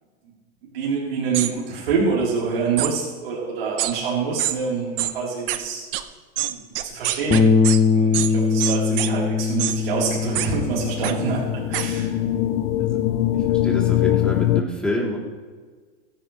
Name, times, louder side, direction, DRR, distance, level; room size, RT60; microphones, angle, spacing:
voice 1, 0.7-5.8 6.5-7.4 7.9-12.1, right 5 dB, 85° right, -6 dB, 4.1 m, -26 dB
sound 1, 1.3-1.5 2.8-2.9 3.8-3.9 4.4-4.5 5.0-5.1 5.5-5.6 5.9-6.0 6.4-7.8 8.1-8.3 8.6-9.1 9.6-9.8 10.3-10.5 11.0-11.1 11.7-11.8, right 14 dB, 70° right, 1.0 m, -24 dB
Bass guitar, 7.3-13.6, left 5 dB, 20° left, 1.0 m, -22 dB
sound 2, 9.6-14.6, left 13 dB, 75° left, 0.6 m, -23 dB
voice 2, 13.3-15.2, left 1 dB, 5° left, -3 dB, 3.5 m, -28 dB
15.5 x 10.5 x 3.4 m, 1.5 s
supercardioid pair, 125°, 29 cm